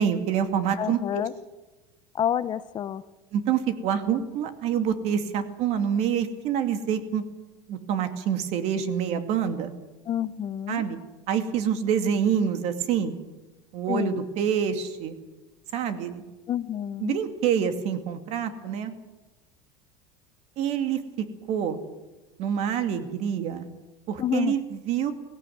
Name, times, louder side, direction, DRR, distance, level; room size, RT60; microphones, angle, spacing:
voice 1, 0.0-1.2 3.3-7.2 7.7-9.7 10.7-11.0 11.3-13.1 13.7-15.2 15.7-16.2 17.0-18.9 20.6-21.0 21.5-21.8 22.4-23.7 24.1-25.1, right 8 dB, 60° right, 8 dB, 2.5 m, -26 dB
voice 2, 0.8-1.3 2.1-3.0 10.1-10.8 13.9-14.2 16.5-17.2 24.2-24.5, left 10 dB, 35° left, 14 dB, 0.7 m, -28 dB
18.5 x 17.0 x 9.4 m, 1.1 s
supercardioid pair, 120°, 13 cm